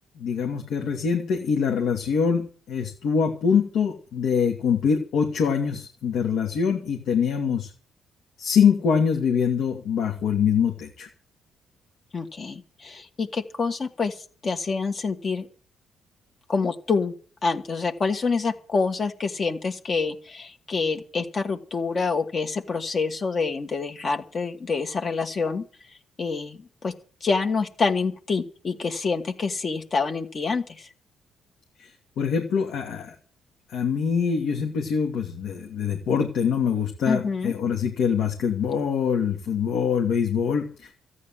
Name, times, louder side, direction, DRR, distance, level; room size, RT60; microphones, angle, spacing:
voice 1, 0.2-7.7 8.4-11.1 31.8-33.1 33.7-40.9, left 6 dB, 75° left, 2 dB, 2.7 m, -24 dB
voice 2, 12.1-14.1 14.4-15.5 16.5-17.1 17.4-25.6 26.2-26.9 27.2-30.9 37.1-37.5, left 4 dB, 40° left, 4 dB, 2.3 m, -27 dB
14.0 x 9.8 x 7.6 m, 0.41 s
cardioid pair, 90°, 0 cm